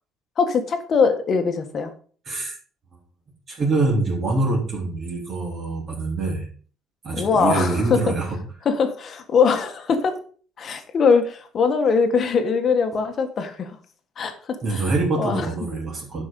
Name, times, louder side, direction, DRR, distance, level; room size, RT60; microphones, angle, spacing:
voice 1, 0.4-1.9 7.2-8.0 8.6-10.2 10.6-13.7 14.2-14.6 15.2-15.5, left 5 dB, 35° left, 7 dB, 1.6 m, -21 dB
voice 2, 2.2-2.6 3.5-6.5 7.0-8.4 14.6-16.2, right 2 dB, 35° right, -3 dB, 3.4 m, -24 dB
11.5 x 5.4 x 5.3 m, 0.43 s
cardioid pair, 155°, 0 cm